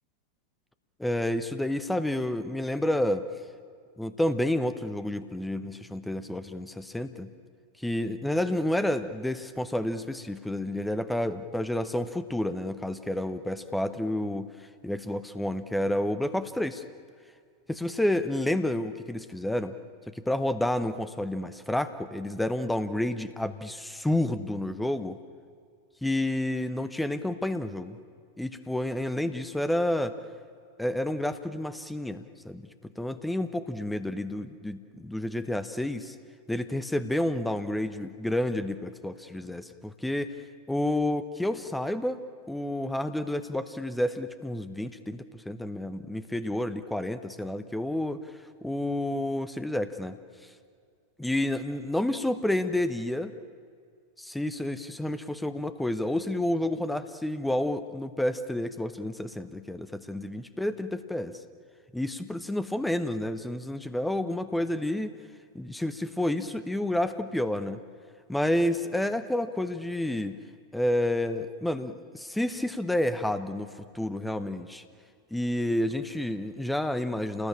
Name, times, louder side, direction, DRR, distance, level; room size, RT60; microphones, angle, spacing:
voice 1, 1.0-3.3 4.0-7.3 7.8-16.8 17.7-19.7 20.1-25.2 26.0-28.0 28.4-30.2 30.8-36.1 36.5-40.3 40.7-48.2 48.6-50.2 51.2-53.3 54.2-61.4 61.9-65.1 65.5-67.8 68.3-70.4 70.7-74.8 75.3-77.5, left 1 dB, 5° left, 11 dB, 1.0 m, -30 dB
28.0 x 19.5 x 8.8 m, 2.2 s
figure-of-eight pair, 90°, 0 cm